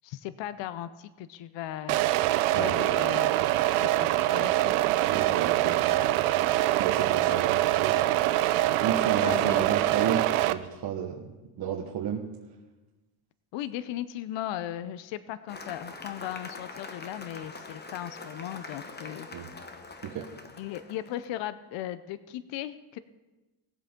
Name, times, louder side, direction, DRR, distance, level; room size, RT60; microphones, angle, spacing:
voice 1, 0.0-2.1 2.5-3.3 3.8-4.7 9.2-9.7 13.5-19.3 20.6-23.0, left 12 dB, 60° left, 14 dB, 0.7 m, -37 dB
sound 1, 1.9-10.5, right 15 dB, 85° right, 0.7 m, -24 dB
voice 2, 5.1-6.3 6.8-7.9 8.8-12.2 19.3-19.5 20.0-20.3, right 8 dB, 50° right, 0 dB, 1.2 m, -32 dB
Cheering / Applause, 15.5-21.2, left 3 dB, 20° left, 1.0 m, -44 dB
19.5 x 7.5 x 3.7 m, 1.1 s
cardioid pair, 120°, 49 cm